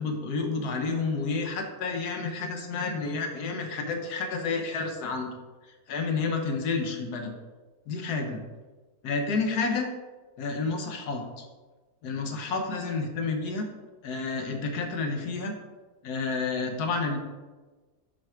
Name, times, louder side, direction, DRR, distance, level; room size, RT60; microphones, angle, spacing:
voice 1, 0.0-5.3 5.9-7.3 7.9-8.4 9.0-9.9 10.4-11.5 12.0-13.7 14.0-15.5 16.0-17.2, left 4 dB, 85° left, 4 dB, 1.5 m, -30 dB
6.1 x 4.8 x 4.9 m, 1.3 s
omnidirectional pair, 1.6 m